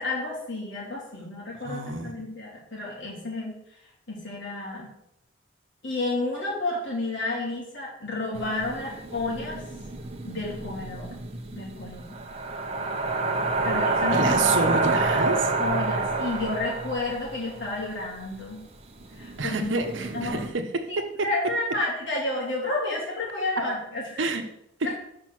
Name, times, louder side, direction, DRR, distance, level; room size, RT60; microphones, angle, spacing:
voice 1, 0.0-3.6 4.1-4.9 5.8-9.6 10.3-11.2 11.5-12.1 13.6-14.5 15.6-18.6 19.2-19.7 20.1-20.4 20.9-21.0 21.2-24.2 24.8-25.0, left 2 dB, 70° left, -4 dB, 3.5 m, -31 dB
voice 2, 1.6-2.2 14.1-15.5 19.4-21.0 24.2-24.4, right 3 dB, 70° right, 6 dB, 1.0 m, -28 dB
sound 1, 8.3-17.9 18.2-18.3 18.9-20.5, right 3 dB, 30° right, 0.9 m, -28 dB
6.6 x 5.5 x 6.0 m, 0.79 s
head